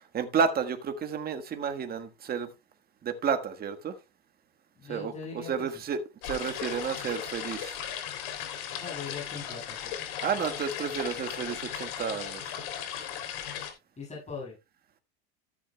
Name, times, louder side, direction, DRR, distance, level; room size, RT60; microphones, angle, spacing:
voice 1, 0.1-2.5 3.0-3.9 4.9-7.8 10.2-12.6, right 6 dB, 25° right, 1.5 m, -31 dB
voice 2, 4.8-5.5 8.8-9.9 14.0-14.5, left 5 dB, 20° left, 7.4 m, -40 dB
sound 1, 6.2-13.7, left 9 dB, 65° left, 3.4 m, -37 dB
13.5 x 10.0 x 2.3 m
hypercardioid pair, 105°, 34 cm